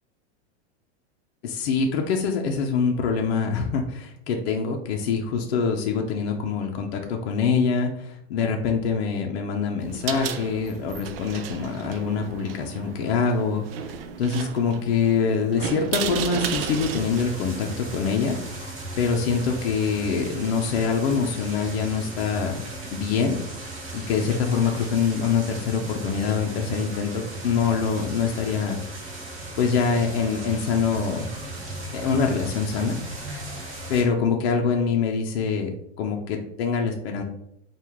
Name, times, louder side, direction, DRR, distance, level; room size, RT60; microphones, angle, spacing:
voice 1, 1.4-18.5 19.0-22.6 22.9-23.4 23.9-28.8 29.6-31.3 31.9-33.0 33.9-35.7 36.0-37.2, left 5 dB, 60° left, 2 dB, 0.6 m, -25 dB
sound 1, 9.8-18.5, right 8 dB, 60° right, 0.4 m, -34 dB
sound 2, 16.5-34.0, right 2 dB, 20° right, 0.6 m, -36 dB
4.6 x 2.4 x 3.5 m, 0.77 s
supercardioid pair, 175°, 34 cm